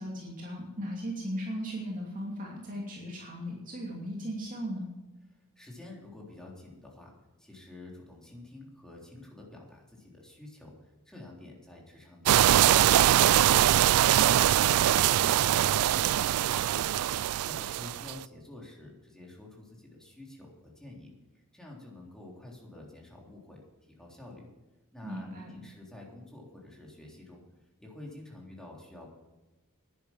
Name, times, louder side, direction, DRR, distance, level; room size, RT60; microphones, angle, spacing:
voice 1, 0.0-4.9 25.0-25.6, equal, 40° right, -3 dB, 2.7 m, -37 dB
voice 2, 5.3-7.1 7.4-13.5 13.9-17.0 17.5-24.5 24.9-25.3 25.5-27.4 27.8-29.1, left 2 dB, 5° left, -2 dB, 3.6 m, -49 dB
sound 1, 12.3-18.1, right 12 dB, 75° right, 0.3 m, -23 dB
10.5 x 10.5 x 7.2 m, 1.1 s
head